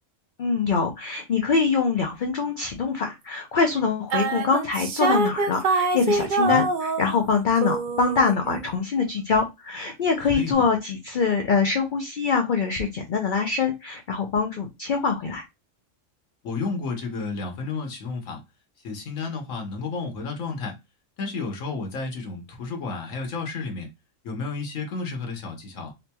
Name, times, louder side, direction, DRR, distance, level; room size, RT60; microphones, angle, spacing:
voice 1, 0.4-15.4, left 5 dB, 55° left, 0.6 m, -24 dB
sound 1, 4.1-7.3 7.6-8.7, right 3 dB, 60° right, 0.5 m, -25 dB
voice 2, 10.3-10.6 16.4-18.4 18.8-20.7 21.2-23.9 24.2-25.9, left 4 dB, 80° left, 1.3 m, -31 dB
3.9 x 2.9 x 2.2 m
omnidirectional pair, 1.4 m